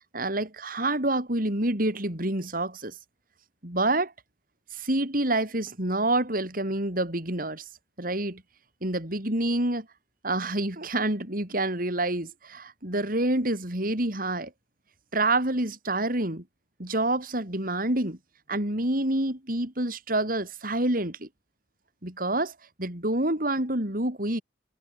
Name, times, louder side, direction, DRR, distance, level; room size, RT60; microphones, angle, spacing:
voice 1, 0.1-2.9 3.6-4.1 4.7-7.7 8.0-8.4 8.8-9.9 10.2-14.5 15.1-16.4 16.8-18.2 18.5-21.3 22.0-24.4, right 2 dB, 55° right, 5.7 m, -27 dB
head